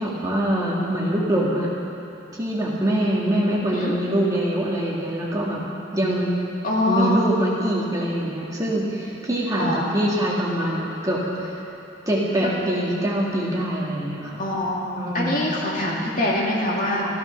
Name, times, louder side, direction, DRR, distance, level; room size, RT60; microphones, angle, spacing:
voice 1, 0.0-1.7 2.3-5.6 5.9-6.3 6.9-11.6 12.1-14.4 15.0-15.5, right 1 dB, 15° right, -5 dB, 2.0 m, -24 dB
voice 2, 6.6-7.1 9.6-9.9 12.4-12.5 14.4-14.8 15.1-17.1, left 1 dB, 40° left, -4 dB, 2.4 m, -24 dB
14.5 x 14.0 x 5.9 m, 3.0 s
head